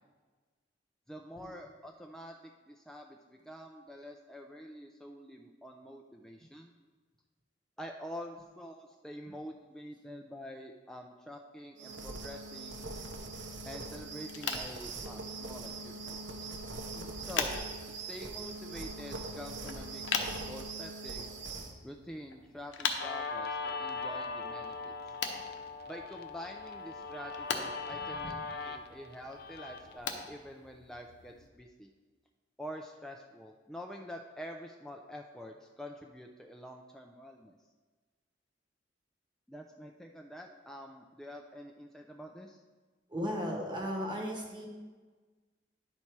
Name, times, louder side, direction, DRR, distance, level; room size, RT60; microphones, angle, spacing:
voice 1, 1.1-6.7 7.8-12.9 13.6-16.6 17.2-17.6 17.9-21.3 21.8-24.9 25.9-31.9 32.6-37.6 39.5-42.6, equal, 5° left, 2 dB, 0.3 m, -47 dB
sound 1, 11.8-21.7, right 3 dB, 80° right, 0.9 m, -42 dB
sound 2, 14.2-31.5, left 5 dB, 90° left, 0.8 m, -42 dB
Guitar, 23.0-30.0, left 4 dB, 55° left, 0.6 m, -40 dB
voice 2, 43.1-44.7, equal, 25° right, 0 dB, 1.0 m, -36 dB
11.0 x 4.3 x 4.6 m, 1.4 s
head